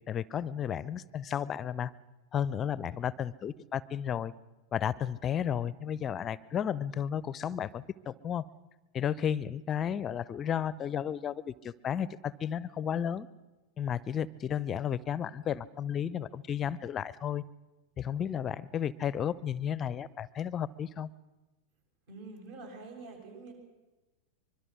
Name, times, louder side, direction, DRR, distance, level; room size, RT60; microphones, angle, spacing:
voice 1, 0.1-1.9 2.3-4.3 4.7-8.5 8.9-13.3 13.8-17.4 18.0-21.1, left 9 dB, 25° left, 21 dB, 0.7 m, -33 dB
voice 2, 22.1-23.5, right 3 dB, 55° right, 2 dB, 7.4 m, -46 dB
24.5 x 22.5 x 6.3 m, 1.1 s
figure-of-eight pair, 90°, 0 cm